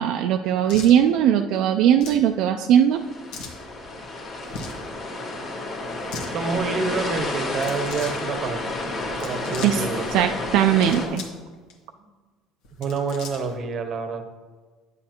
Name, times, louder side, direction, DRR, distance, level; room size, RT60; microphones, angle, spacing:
voice 1, 0.0-3.0 9.6-9.8 10.1-11.2, right 10 dB, 65° right, 5 dB, 0.3 m, -19 dB
sound 1, 0.7-1.0 2.0-2.2 3.3-3.6 4.4-4.8 5.9-6.3 7.5-8.2 9.1-9.8 10.6-11.4 11.7-11.8 12.6-13.6, left 4 dB, 75° left, 1.3 m, -38 dB
sound 2, 2.9-11.1, left 2 dB, 40° left, 1.5 m, -31 dB
voice 2, 6.3-8.7 9.2-10.0 12.8-14.2, right 4 dB, 35° right, 7 dB, 0.8 m, -28 dB
9.6 x 7.3 x 2.9 m, 1.4 s
cardioid pair, 145°, 0 cm